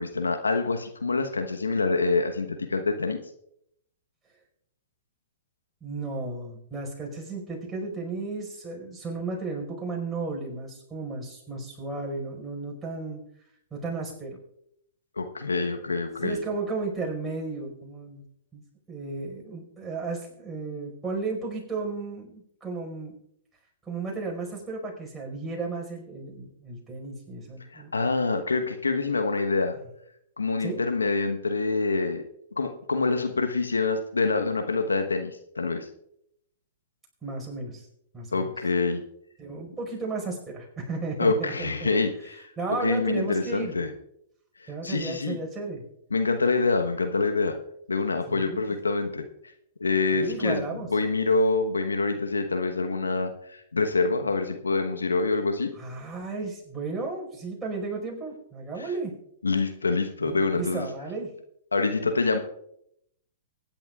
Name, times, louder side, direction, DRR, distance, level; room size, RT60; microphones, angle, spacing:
voice 1, 0.0-3.2 15.2-16.4 27.7-29.8 30.4-32.2 32.6-35.9 38.3-39.0 41.2-42.5 42.8-43.9 44.6-45.4 46.1-47.6 47.9-49.3 49.8-55.7 58.8-58.9 59.4-60.9 61.7-62.4, left 3 dB, 90° left, 6 dB, 1.1 m, -26 dB
voice 2, 5.8-13.2 13.7-14.4 16.2-18.2 18.5-23.1 23.9-27.9 30.6-30.8 37.2-37.8 38.1-38.5 39.4-41.9 42.6-43.8 44.7-45.8 48.3-48.7 50.1-50.9 55.8-59.1 60.2-61.3, right 3 dB, 10° right, -2 dB, 5.0 m, -34 dB
23.5 x 10.5 x 2.4 m, 0.75 s
hypercardioid pair, 115°, 0 cm